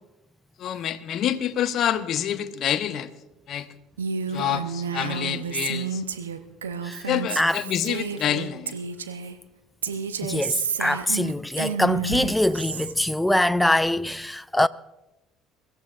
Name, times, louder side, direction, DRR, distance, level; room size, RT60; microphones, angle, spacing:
voice 1, 0.6-3.1 3.5-3.7 4.3-6.0 7.1-8.8, left 10 dB, 55° left, 0.9 m, -27 dB
Female speech woman speaking, 4.0-9.4 9.8-12.9, right 6 dB, 85° right, 0.8 m, -31 dB
voice 2, 10.2-14.7, left 1 dB, 5° left, 0.5 m, -23 dB
24.0 x 14.5 x 2.5 m
hypercardioid pair, 60°, 0 cm